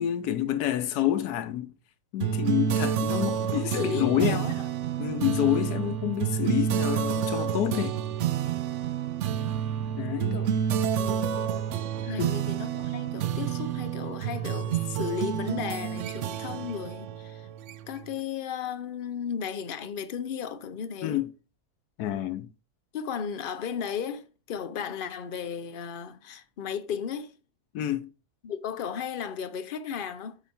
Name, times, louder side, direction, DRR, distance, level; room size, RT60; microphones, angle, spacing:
voice 1, 0.0-1.7 2.1-4.4 5.0-8.0 10.0-10.4 12.1-12.3 21.0-21.3 22.0-22.5 27.7-28.1, left 12 dB, 90° left, 1.2 m, -28 dB
voice 2, 2.2-2.7 3.1-4.5 10.3-10.5 10.9-11.5 12.1-17.5 17.9-21.3 22.9-27.3 28.4-30.4, left 7 dB, 55° left, 0.6 m, -35 dB
sound 1, 2.2-18.1, right 9 dB, 65° right, 0.8 m, -29 dB
8.0 x 4.4 x 4.3 m
omnidirectional pair, 1.6 m